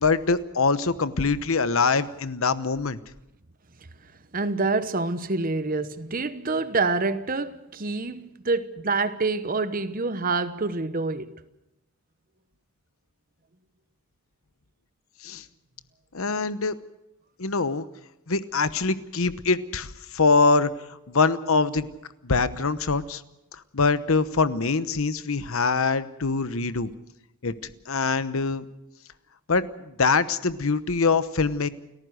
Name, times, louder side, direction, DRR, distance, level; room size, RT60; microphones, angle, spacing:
voice 1, 0.0-3.0 15.2-15.4 16.1-16.7 17.4-17.9 18.3-20.7 21.1-21.9 22.2-23.2 23.7-26.9 27.4-27.5 27.9-28.6 29.5-31.7, left 4 dB, 70° left, 1.0 m, -23 dB
voice 2, 4.3-11.4, right 3 dB, 40° right, 1.0 m, -27 dB
29.5 x 14.5 x 6.5 m
head